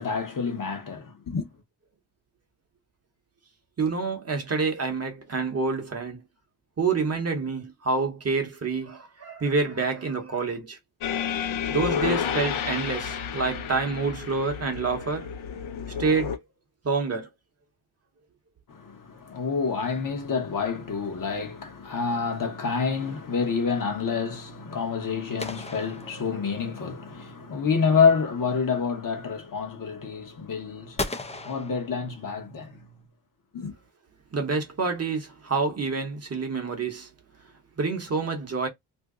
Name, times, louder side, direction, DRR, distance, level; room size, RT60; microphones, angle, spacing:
voice 1, 0.0-1.5 18.7-32.9 33.5-33.7, left 5 dB, 45° left, 0.8 m, -28 dB
voice 2, 3.8-6.2 6.8-10.8 11.7-15.3 15.9-16.4 16.8-17.3 34.3-37.1 37.8-38.7, right 4 dB, 30° right, 0.8 m, -27 dB
sound 1, 11.0-16.4, left 8 dB, 85° left, 0.8 m, -30 dB
sound 2, 25.4-26.8 31.0-32.6, left 2 dB, 15° left, 0.3 m, -36 dB
2.8 x 2.6 x 3.5 m
wide cardioid pair, 165°, 47 cm